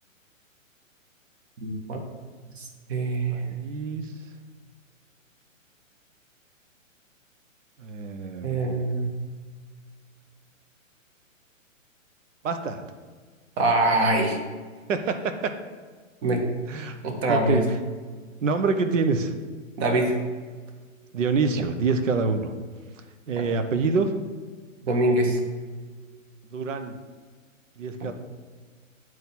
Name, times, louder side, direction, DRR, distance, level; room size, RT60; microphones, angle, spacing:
voice 1, 1.6-2.0 2.6-3.4 8.4-9.1 13.6-14.4 16.2-16.4 17.0-17.6 19.8-20.2 24.8-25.4, right 2 dB, 50° right, 3 dB, 1.8 m, -24 dB
voice 2, 3.3-4.1 7.8-8.6 12.4-12.8 14.9-15.4 16.7-17.0 17.3-17.8 18.4-19.3 21.1-22.5 23.3-24.1 26.5-27.0 27.8-28.1, right 4 dB, 65° right, 8 dB, 1.0 m, -26 dB
7.9 x 4.7 x 7.1 m, 1.5 s
hypercardioid pair, 140°, 40 cm